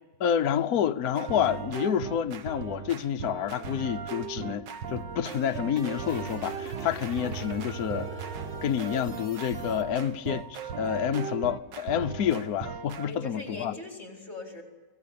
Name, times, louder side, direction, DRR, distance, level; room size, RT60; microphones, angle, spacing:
voice 1, 0.2-8.1 8.6-13.8, left 9 dB, 60° left, 1.4 m, -29 dB
sound 1, 1.2-13.1, right 7 dB, 80° right, 1.8 m, -38 dB
sound 2, 4.9-9.8, right 4 dB, 35° right, 1.5 m, -41 dB
voice 2, 13.0-14.6, left 2 dB, 40° left, 5.2 m, -40 dB
25.0 x 18.0 x 8.7 m
omnidirectional pair, 1.9 m